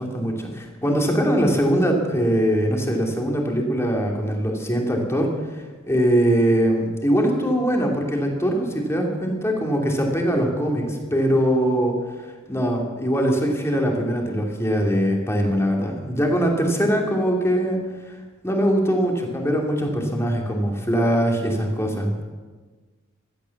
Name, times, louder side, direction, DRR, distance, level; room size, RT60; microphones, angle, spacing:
voice 1, 0.0-12.0 12.5-17.8 18.4-22.2, equal, 15° left, 1 dB, 2.7 m, -22 dB
15.5 x 12.5 x 7.2 m, 1.3 s
head